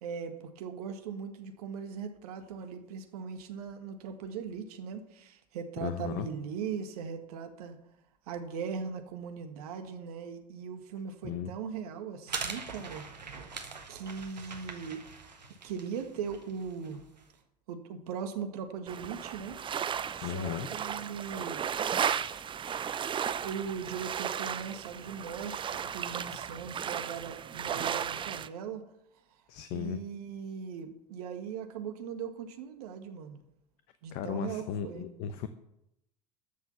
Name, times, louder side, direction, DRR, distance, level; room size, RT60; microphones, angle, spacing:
voice 1, 0.0-7.8 8.3-13.5 13.9-15.0 15.6-17.0 17.7-19.6 20.1-21.6 23.4-28.8 29.7-33.4 34.0-35.1, right 6 dB, 65° right, 7 dB, 1.7 m, -39 dB
voice 2, 5.8-6.3 11.2-11.5 20.2-20.7 29.5-30.0 34.1-35.5, left 9 dB, 50° left, 10 dB, 0.9 m, -36 dB
sound 1, 12.3-17.2, right 5 dB, 85° right, 1.5 m, -42 dB
sound 2, 18.9-28.5, right 8 dB, 25° right, 0.6 m, -35 dB
13.5 x 6.7 x 7.1 m, 0.82 s
figure-of-eight pair, 75°, 21 cm